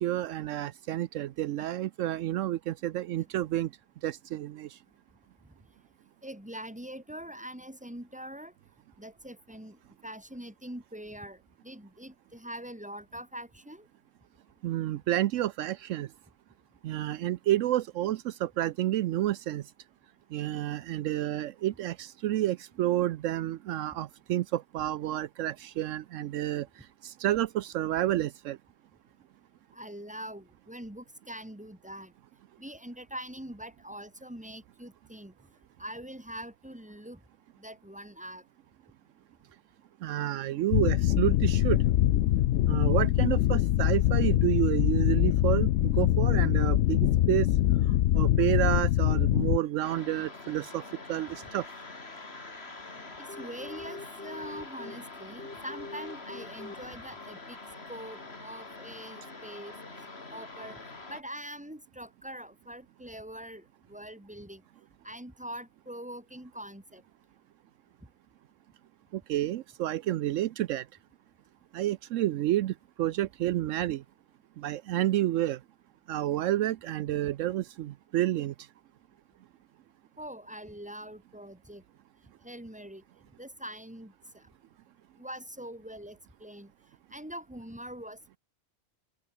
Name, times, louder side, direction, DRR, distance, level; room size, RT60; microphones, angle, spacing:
voice 1, 0.0-3.7 4.0-4.8 14.6-16.1 16.8-19.6 20.3-28.6 40.0-41.8 42.7-47.5 47.9-51.7 69.1-70.8 71.7-74.0 74.6-75.6 76.1-78.5, right 13 dB, 80° right, 0.9 m, -30 dB
voice 2, 6.2-8.5 9.0-13.9 29.7-32.1 32.6-35.3 35.8-37.2 37.6-38.4 53.2-57.6 57.9-59.8 60.3-60.8 61.1-64.6 65.0-67.0 80.2-81.8 82.4-83.0 83.4-84.5 85.2-86.7 87.1-88.4, right 1 dB, 5° right, 3.2 m, -43 dB
sound 1, 40.7-49.6, left 13 dB, 70° left, 0.9 m, -24 dB
sound 2, 49.8-61.2, left 3 dB, 55° left, 3.2 m, -44 dB
omnidirectional pair, 1.3 m